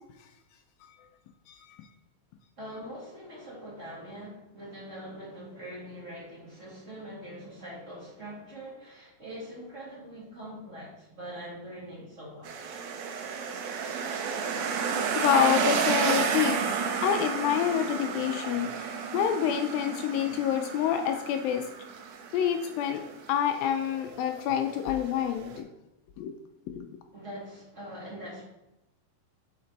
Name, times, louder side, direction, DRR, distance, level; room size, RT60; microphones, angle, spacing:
voice 1, 1.5-1.8 15.2-16.6 17.0-18.7 19.1-21.6 22.3-23.0 23.3-25.7 26.2-26.3 26.7-26.9, left 9 dB, 85° left, 6 dB, 2.1 m, -27 dB
voice 2, 2.6-12.8 27.1-28.4, equal, 35° right, -6 dB, 1.3 m, -43 dB
sound 1, 12.4-25.6, right 6 dB, 90° right, 1.7 m, -32 dB
6.1 x 5.1 x 4.0 m, 0.91 s
omnidirectional pair, 4.5 m